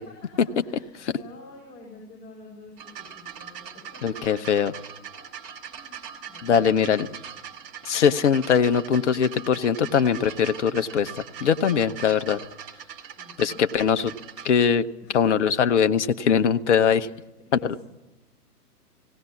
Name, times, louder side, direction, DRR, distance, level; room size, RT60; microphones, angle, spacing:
voice 1, 0.0-4.2 5.1-7.0 13.2-13.7 15.0-15.3 17.4-17.8, left 2 dB, 30° left, -3 dB, 7.0 m, -49 dB
sound 1, 2.8-14.5 15.4-15.5, right 8 dB, 35° right, 2.7 m, -41 dB
voice 2, 4.0-4.7 6.4-7.1 7.8-11.1 11.4-12.4 13.4-14.1 14.4-14.9 15.1-17.1 17.6-17.8, left 7 dB, 45° left, 10 dB, 0.9 m, -21 dB
18.5 x 17.5 x 8.4 m, 0.98 s
figure-of-eight pair, 125°, 48 cm